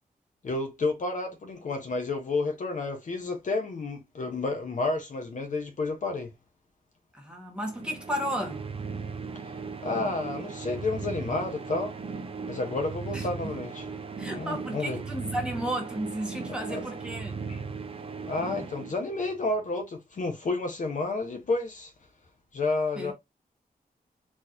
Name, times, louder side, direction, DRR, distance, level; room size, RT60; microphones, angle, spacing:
voice 1, 0.4-6.3 9.8-11.9 12.5-13.9 14.3-15.0 16.5-16.8 17.5-17.6 18.3-21.9 22.5-23.1, left 3 dB, 55° left, 0.8 m, -30 dB
voice 2, 7.1-8.6 13.1-13.3 14.2-17.3 23.0-23.1, right 1 dB, 5° right, 1.1 m, -33 dB
sound 1, 7.7-19.5, right 5 dB, 35° right, 0.5 m, -37 dB
4.2 x 2.9 x 2.5 m
wide cardioid pair, 170°, 16 cm